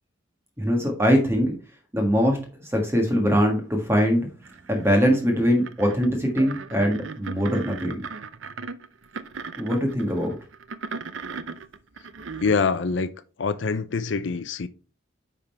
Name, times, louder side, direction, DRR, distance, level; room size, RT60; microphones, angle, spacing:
voice 1, 0.6-1.5 1.9-4.3 4.7-8.0 9.6-10.3, equal, 10° right, 1.5 m, -22 dB
sound 1, 4.4-12.6, right 4 dB, 75° right, 0.7 m, -37 dB
voice 2, 12.4-13.1 13.4-14.7, left 4 dB, 65° left, 0.5 m, -24 dB
9.8 x 3.8 x 4.4 m
head